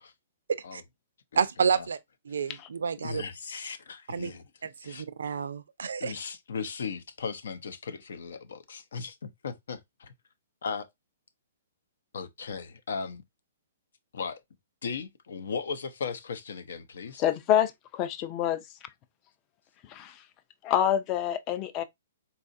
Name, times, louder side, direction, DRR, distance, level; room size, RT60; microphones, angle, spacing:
voice 1, 1.3-2.0 2.2-3.2 4.1-4.3 4.6-6.2, right 6 dB, 85° right, 0.4 m, -29 dB
voice 2, 3.0-4.4 4.8-5.0 6.0-10.1 10.6-10.9 12.1-13.2 14.1-14.4 14.8-17.2, left 5 dB, 75° left, 0.6 m, -37 dB
voice 3, 17.2-18.6 19.9-20.2 20.6-21.8, left 10 dB, 30° left, 0.4 m, -27 dB
4.0 x 2.4 x 2.5 m
hypercardioid pair, 145°, 0 cm